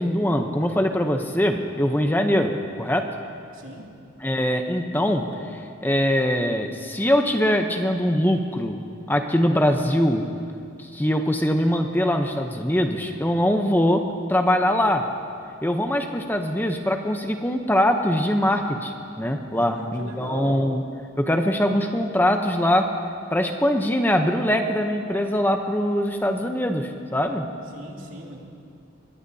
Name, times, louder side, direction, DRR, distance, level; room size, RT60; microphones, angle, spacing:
voice 1, 0.0-3.1 4.2-8.8 9.1-10.3 10.8-15.1 15.6-20.8 21.2-22.9 23.3-27.5, equal, 10° left, 4 dB, 0.7 m, -22 dB
voice 2, 19.5-20.7 27.7-28.5, right 1 dB, 85° right, -2 dB, 2.6 m, -38 dB
22.0 x 21.0 x 2.8 m, 2.4 s
head